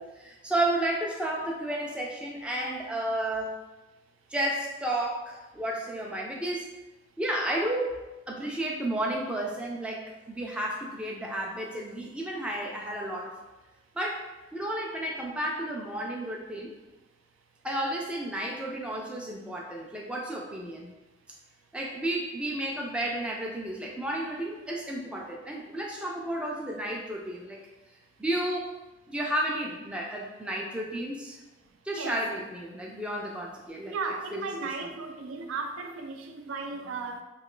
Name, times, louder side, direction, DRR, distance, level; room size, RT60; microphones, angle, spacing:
voice 1, 0.0-3.6 4.3-6.7 7.2-13.3 14.0-16.7 17.6-20.9 21.7-27.6 28.2-28.7 29.1-31.4 31.8-33.9 34.3-34.5 34.8-34.9, right 1 dB, 5° right, -2 dB, 0.3 m, -32 dB
voice 2, 31.9-32.2 33.8-37.2, right 4 dB, 90° right, 5 dB, 0.4 m, -35 dB
3.0 x 2.3 x 3.7 m, 1.1 s
head